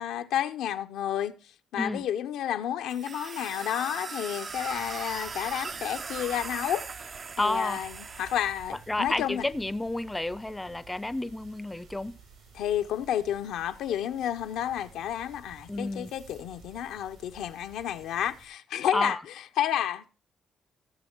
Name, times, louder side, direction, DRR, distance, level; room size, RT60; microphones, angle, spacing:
voice 1, 0.0-1.3 1.7-6.9 7.4-9.5 12.5-19.2 19.6-20.1, left 10 dB, 85° left, 0.7 m, -31 dB
sound 1, 2.9-8.8, right 5 dB, 40° right, 0.4 m, -39 dB
sound 2, 4.5-18.5, right 5 dB, 85° right, 7.4 m, -53 dB
voice 2, 7.4-7.8 8.9-12.1 15.7-16.1 18.9-19.2, left 1 dB, 10° left, 0.5 m, -30 dB
15.5 x 6.5 x 4.5 m
cardioid pair, 90°, 0 cm